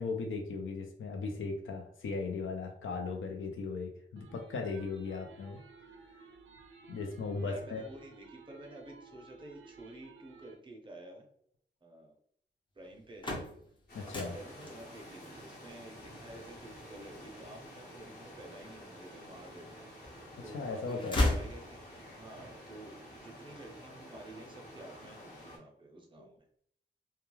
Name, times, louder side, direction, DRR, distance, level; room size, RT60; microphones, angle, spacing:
voice 1, 0.0-5.6 6.9-7.8 13.9-14.3 20.5-21.2, left 4 dB, 85° left, 3 dB, 0.5 m, -37 dB
sound 1, 4.2-10.6, right 4 dB, 75° right, 0.4 m, -55 dB
voice 2, 7.4-11.3 11.8-12.2 12.7-13.5 14.3-21.9 22.2-26.4, right 1 dB, 25° right, 1 dB, 0.6 m, -51 dB
sound 2, 12.9-18.9 19.4-20.3 20.6-22.2, left 1 dB, 25° left, 0.5 m, -36 dB
sound 3, 13.9-25.6, equal, 55° left, 0.8 m, -50 dB
2.3 x 2.2 x 3.0 m, 0.67 s
wide cardioid pair, 165°, 20 cm